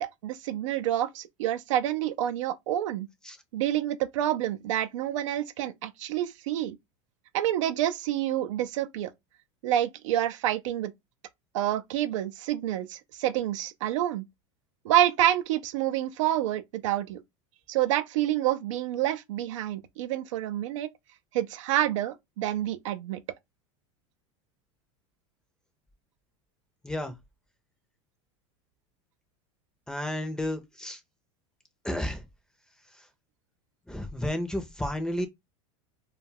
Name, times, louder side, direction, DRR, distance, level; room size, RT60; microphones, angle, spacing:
voice 1, 0.0-3.1 3.5-6.8 7.3-9.1 9.6-10.9 11.5-14.3 14.8-17.2 17.7-20.9 21.3-23.2, right 12 dB, 80° right, 0.4 m, -28 dB
voice 2, 26.8-27.1 29.9-31.0 31.8-32.2 33.9-35.3, left 1 dB, 5° left, 0.5 m, -32 dB
2.3 x 2.2 x 3.2 m
hypercardioid pair, 105°, 16 cm